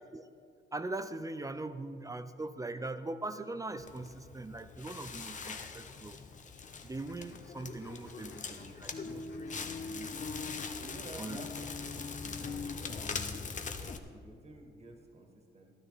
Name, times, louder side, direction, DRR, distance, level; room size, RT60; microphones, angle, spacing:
voice 1, 0.7-6.2 6.8-9.5 9.8-10.1 11.2-11.4, right 2 dB, 15° right, 11 dB, 0.6 m, -41 dB
Crackle, 3.8-14.0, left 5 dB, 40° left, 0.9 m, -41 dB
sound 1, 6.6-12.6, left 5 dB, 55° left, 1.1 m, -58 dB
voice 2, 10.8-11.9 12.2-15.7, right 2 dB, 30° right, 2 dB, 2.0 m, -51 dB
13.0 x 12.5 x 4.1 m, 2.2 s
cardioid pair, 90°, 20 cm